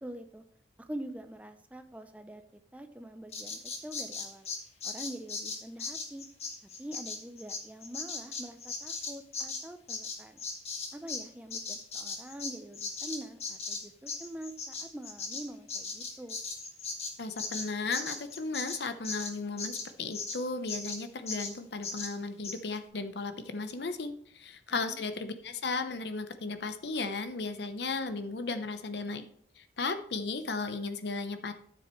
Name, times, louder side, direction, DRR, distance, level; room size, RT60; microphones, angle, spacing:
voice 1, 0.0-0.4 0.8-2.4 2.7-4.5 4.8-6.3 6.8-10.4 10.9-16.4 24.7-25.0, right 1 dB, 10° right, 7 dB, 0.5 m, -44 dB
Bird vocalization bird call bird song, 3.3-11.2 11.5-20.4 20.7-21.0 21.3-21.5 21.8-22.1 22.4-22.6, left 4 dB, 35° left, 1.5 m, -38 dB
voice 2, 17.2-29.3 29.6-31.5, left 3 dB, 70° left, 9 dB, 0.8 m, -35 dB
12.5 x 7.1 x 3.1 m, 0.63 s
head